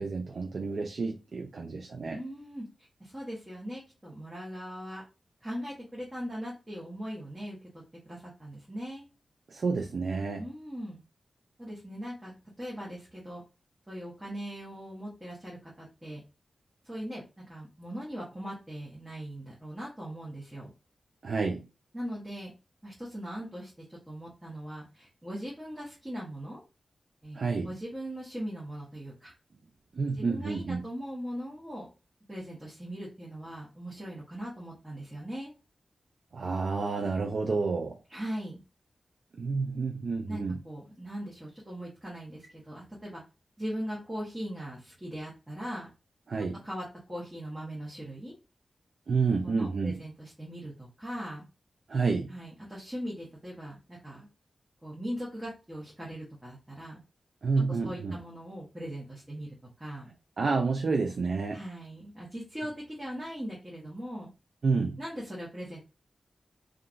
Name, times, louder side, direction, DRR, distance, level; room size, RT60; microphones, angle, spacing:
voice 1, 0.0-2.2 9.5-10.4 21.2-21.6 27.3-27.7 29.9-30.9 36.3-38.0 39.3-40.6 46.3-46.6 49.1-50.0 51.9-52.3 57.4-58.2 60.4-61.6 64.6-65.0, right 4 dB, 65° right, 0.3 m, -29 dB
voice 2, 2.1-5.0 5.4-7.6 8.0-9.1 10.4-11.0 11.6-13.4 13.9-16.2 16.8-20.7 21.9-22.5 22.8-26.6 27.2-27.4 27.6-29.3 30.2-31.9 32.3-35.5 38.1-38.6 40.3-43.2 43.6-45.9 46.6-48.3 49.4-51.4 52.3-54.3 54.8-57.0 57.8-60.1 61.5-64.3 65.0-65.8, equal, 20° right, 1.2 m, -40 dB
2.8 x 2.4 x 2.5 m
cardioid pair, 50°, 0 cm